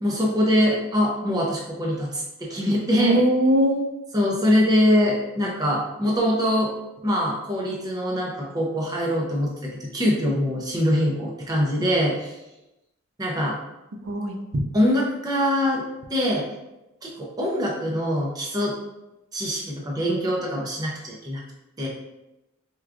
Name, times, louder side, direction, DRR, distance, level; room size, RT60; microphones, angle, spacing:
voice 1, 0.0-3.2 4.1-6.7 7.0-12.4 13.2-13.6 14.7-15.8 16.1-16.5 17.0-18.7 19.3-21.4 21.8-21.9, equal, 20° right, -3 dB, 0.5 m, -23 dB
voice 2, 3.0-3.9 14.0-14.6, equal, 70° right, 4 dB, 0.5 m, -21 dB
4.4 x 2.3 x 2.4 m, 0.94 s
head